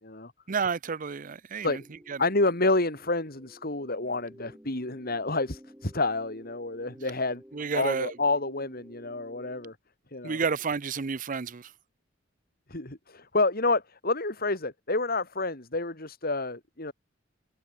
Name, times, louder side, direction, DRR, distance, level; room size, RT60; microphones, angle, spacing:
voice 1, 0.5-1.8 2.1-2.2 7.5-8.1 10.2-11.7, right 5 dB, 45° right, 0.6 m, -30 dB
sound 1, 1.7-9.7, equal, 10° right, 7.9 m, -53 dB
voice 2, 2.2-7.4 7.7-9.8 10.1-10.4 12.7-16.9, left 2 dB, 50° left, 4.0 m, -29 dB
head